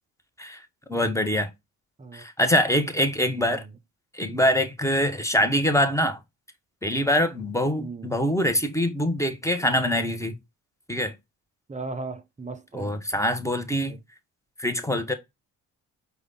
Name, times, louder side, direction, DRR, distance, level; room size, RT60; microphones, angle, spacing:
voice 1, 0.9-1.5 2.1-3.6 4.1-6.2 6.8-10.3 10.9-11.1 12.7-14.0 14.6-15.1, left 1 dB, 5° left, 1.0 m, -24 dB
voice 2, 3.3-3.7 5.4-5.5 7.8-8.1 11.7-12.9 13.9-14.0, right 3 dB, 15° right, 0.7 m, -37 dB
4.8 x 2.4 x 3.9 m
hypercardioid pair, 45°, 46 cm